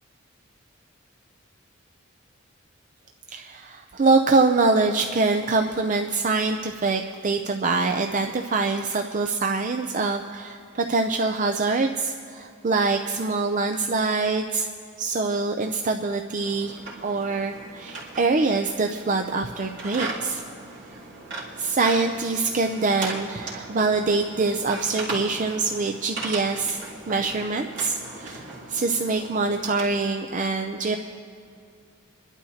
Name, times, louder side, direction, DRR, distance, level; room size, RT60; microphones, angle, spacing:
voice 1, 3.3-14.7 15.0-20.4 21.6-31.0, right 3 dB, 40° right, 5 dB, 0.5 m, -24 dB
sound 1, 16.4-30.0, right 2 dB, 60° right, 3.2 m, -38 dB
28.0 x 11.5 x 2.8 m, 2.3 s
head